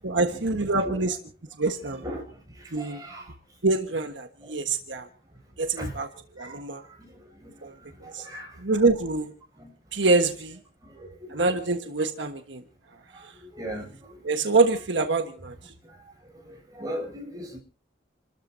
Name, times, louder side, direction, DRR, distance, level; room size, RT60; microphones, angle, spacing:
voice 1, 0.0-1.2 1.6-2.0 2.7-3.0 3.6-5.1 5.6-6.1 6.4-6.8 7.6-7.7 8.1-8.2 8.6-9.3 9.9-10.6 11.3-12.6 14.2-15.5, right 3 dB, 75° right, 1.4 m, -25 dB
voice 2, 2.8-3.2 5.8-5.9 6.4-6.6 8.2-8.5 9.6-9.7 13.6-13.9 16.5-17.6, equal, 20° right, 7.0 m, -36 dB
29.5 x 13.5 x 2.7 m
head